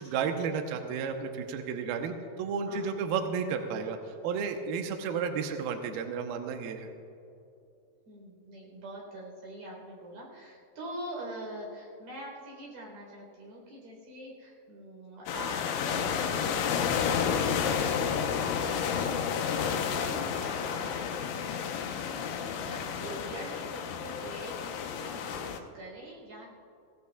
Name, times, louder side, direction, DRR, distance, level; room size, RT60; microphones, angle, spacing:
voice 1, 0.0-6.9, right 6 dB, 85° right, 4 dB, 2.1 m, -32 dB
voice 2, 2.7-3.0 8.1-26.5, right 1 dB, 45° right, -2 dB, 5.2 m, -44 dB
sound 1, 15.3-25.6, left 7 dB, 75° left, 3.0 m, -31 dB
22.0 x 16.5 x 2.3 m, 2.7 s
omnidirectional pair, 5.5 m